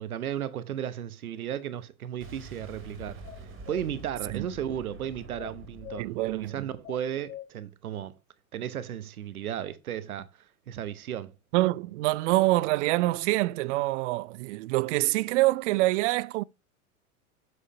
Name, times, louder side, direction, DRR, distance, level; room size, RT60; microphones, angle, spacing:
voice 1, 0.0-3.2 3.7-8.1 8.5-10.3 10.7-11.3, right 10 dB, 80° right, 1.0 m, -34 dB
Boom, 2.2-7.1, right 1 dB, 30° right, 2.5 m, -46 dB
sound 1, 3.2-3.8 5.4-6.0 6.8-7.5, left 11 dB, 80° left, 0.7 m, -43 dB
voice 2, 6.0-6.7 11.5-16.4, right 19 dB, 55° right, 0.5 m, -26 dB
7.6 x 6.3 x 2.8 m
hypercardioid pair, 90°, 43 cm